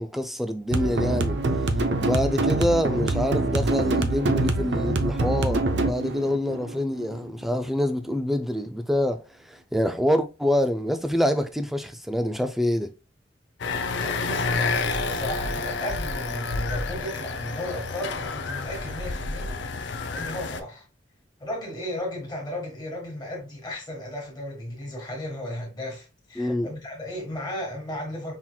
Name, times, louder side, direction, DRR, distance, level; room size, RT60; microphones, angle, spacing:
voice 1, 0.0-1.4 2.0-12.9 26.4-26.7, left 1 dB, ahead, 0.3 m, -26 dB
sound 1, 0.7-7.7, right 2 dB, 65° right, 0.5 m, -25 dB
sound 2, 13.6-20.6, left 3 dB, 65° left, 0.4 m, -29 dB
voice 2, 14.0-19.6 19.9-20.8 21.4-28.3, left 1 dB, 20° left, 1.6 m, -35 dB
5.6 x 2.9 x 2.2 m
head